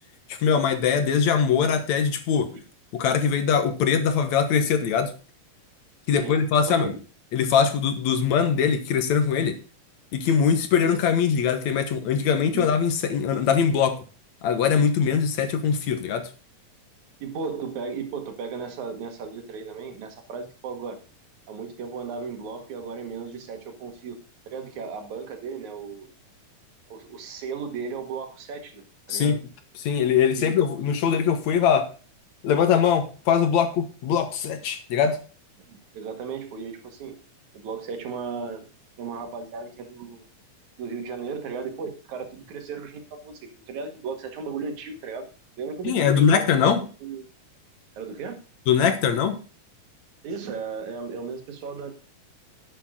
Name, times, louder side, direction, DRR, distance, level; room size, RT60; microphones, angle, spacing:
voice 1, 0.4-2.5 2.9-5.1 6.1-6.9 7.3-9.6 10.1-14.0 14.4-16.3 29.1-29.4 29.8-31.9 32.4-35.2 45.8-46.8 48.7-49.4, left 7 dB, 70° left, 8 dB, 2.5 m, -22 dB
voice 2, 6.1-7.0 12.5-12.7 17.2-21.0 21.5-24.2 24.5-26.1 26.9-28.8 29.1-29.4 30.4-30.6 35.7-37.2 37.5-38.7 39.0-40.2 40.8-45.3 45.6-46.7 47.0-47.3 48.0-48.4 50.2-51.9, right 5 dB, 70° right, 5 dB, 3.3 m, -35 dB
11.0 x 8.4 x 3.9 m, 0.35 s
omnidirectional pair, 3.5 m